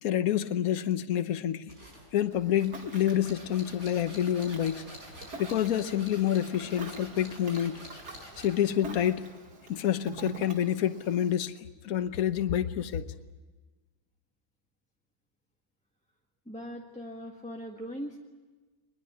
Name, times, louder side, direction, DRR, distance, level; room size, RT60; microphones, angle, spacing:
voice 1, 0.0-1.7 2.1-4.9 5.4-7.8 8.4-9.3 9.7-13.1, left 10 dB, 65° left, 1.4 m, -28 dB
sound 1, 1.7-8.7, equal, 60° right, 6.2 m, -47 dB
Ocean, 2.3-11.3, right 2 dB, 75° right, 2.9 m, -46 dB
voice 2, 16.4-18.2, equal, 5° left, 1.5 m, -40 dB
23.0 x 21.0 x 9.5 m
omnidirectional pair, 1.7 m